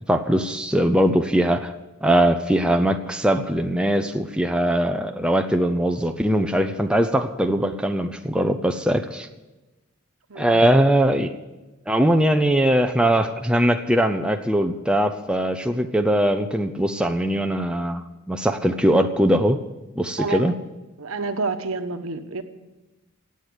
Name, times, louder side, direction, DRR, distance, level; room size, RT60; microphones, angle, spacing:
voice 1, 0.1-1.7 2.0-9.3 10.4-11.3 11.9-19.6 20.0-20.5, right 1 dB, 5° right, 5 dB, 0.6 m, -21 dB
voice 2, 10.3-10.6 20.2-20.5 21.0-22.4, right 3 dB, 80° right, 8 dB, 1.1 m, -28 dB
18.0 x 8.2 x 8.0 m, 1.1 s
head